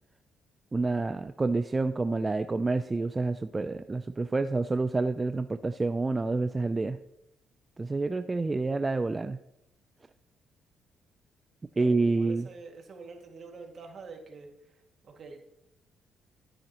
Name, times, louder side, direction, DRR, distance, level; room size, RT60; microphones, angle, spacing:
voice 1, 0.7-7.0 7.8-9.4 11.8-12.5, right 3 dB, 25° right, 10 dB, 0.4 m, -28 dB
voice 2, 11.7-15.4, right 4 dB, 50° right, 2 dB, 2.1 m, -46 dB
12.5 x 9.1 x 3.0 m, 0.82 s
cardioid pair, 90°, 0 cm